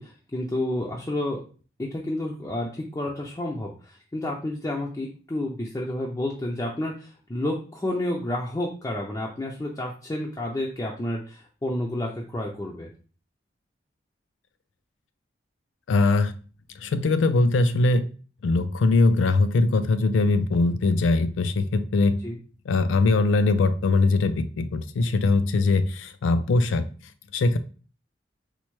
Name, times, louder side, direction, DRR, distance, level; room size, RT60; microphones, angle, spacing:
voice 1, 0.0-1.4 1.8-12.9 22.2-22.4, left 1 dB, 15° left, -2 dB, 0.4 m, -30 dB
voice 2, 15.9-16.3 16.8-18.1 18.4-22.2 22.7-26.9 27.3-27.6, left 3 dB, 90° left, 11 dB, 0.4 m, -21 dB
4.4 x 2.1 x 3.0 m, 0.38 s
head